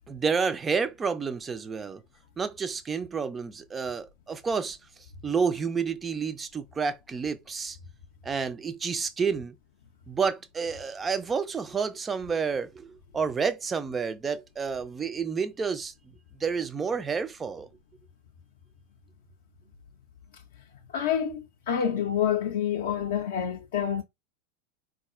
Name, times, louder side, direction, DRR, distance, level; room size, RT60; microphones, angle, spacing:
voice 1, 0.1-2.0 2.4-4.8 5.2-7.8 8.2-9.5 10.1-12.9 13.1-15.9 16.4-17.7, right 5 dB, 20° right, 0.3 m, -29 dB
voice 2, 20.9-21.4 21.7-24.0, left 9 dB, 60° left, 0.4 m, -27 dB
4.0 x 2.3 x 2.3 m
figure-of-eight pair, 80°, 0 cm